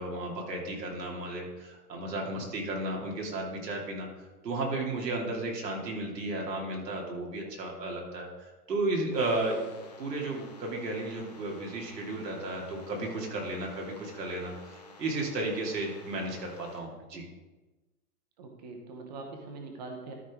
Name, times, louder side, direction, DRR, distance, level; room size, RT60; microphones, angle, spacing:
voice 1, 0.0-4.1 4.4-9.7 10.0-17.2, right 2 dB, 90° right, -1 dB, 2.8 m, -34 dB
sound 1, 9.1-16.8, left 3 dB, 25° left, 0.6 m, -52 dB
voice 2, 18.4-20.1, right 3 dB, 25° right, 3 dB, 0.9 m, -43 dB
13.0 x 5.6 x 3.7 m, 1.2 s
hypercardioid pair, 170°, 48 cm